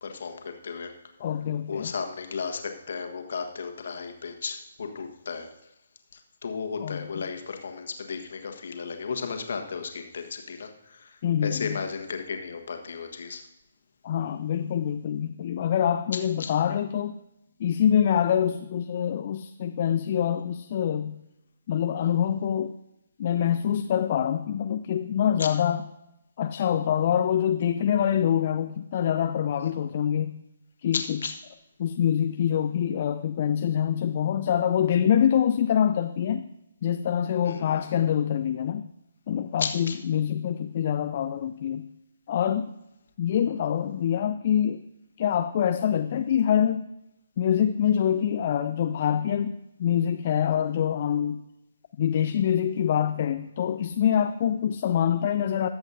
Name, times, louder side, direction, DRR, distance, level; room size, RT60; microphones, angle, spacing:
voice 1, 0.0-0.9 1.7-5.5 6.1-13.4 16.4-16.5 25.4-25.5 29.6-29.7 30.9-31.3 37.4-37.9 39.6-40.0, left 5 dB, 55° left, 5 dB, 1.5 m, -34 dB
voice 2, 1.2-1.9 6.8-7.0 11.2-11.8 14.0-17.2 17.6-21.2 21.7-22.7 23.2-25.8 26.4-30.4 30.8-31.2 31.8-36.5 36.8-38.9 39.3-41.9 42.3-42.7 43.2-44.8 45.2-46.9 47.4-51.4 52.0-55.7, left 9 dB, 40° left, 8 dB, 0.4 m, -25 dB
21.0 x 7.8 x 2.7 m, 0.90 s
figure-of-eight pair, 135°, 0 cm